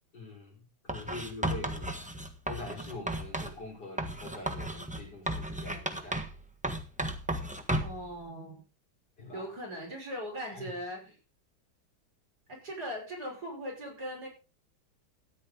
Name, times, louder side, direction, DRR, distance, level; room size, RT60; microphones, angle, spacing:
voice 1, 0.1-0.6 0.8-2.2 2.5-6.2 9.2-9.5 10.5-10.7, left 2 dB, 50° left, -1 dB, 5.1 m, -44 dB
Writing, 0.9-3.6 4.0-6.4 6.6-8.0, right 1 dB, 5° right, 1.0 m, -34 dB
voice 2, 7.8-8.6 9.3-11.2 12.5-14.3, equal, 50° right, -1 dB, 6.2 m, -39 dB
13.5 x 10.0 x 3.8 m, 0.31 s
omnidirectional pair, 2.2 m